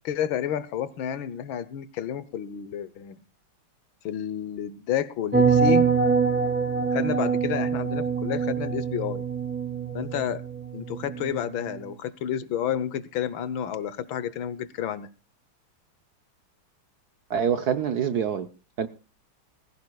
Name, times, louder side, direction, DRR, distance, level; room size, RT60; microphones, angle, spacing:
voice 1, 0.0-3.2 4.0-5.8 6.9-9.2 9.9-10.4 10.7-15.1, left 9 dB, 70° left, 1.6 m, -30 dB
sound 1, 5.3-11.8, right 5 dB, 5° right, 2.5 m, -25 dB
voice 2, 17.3-18.5 18.8-18.9, right 8 dB, 65° right, 1.0 m, -25 dB
20.5 x 15.5 x 2.3 m
omnidirectional pair, 2.4 m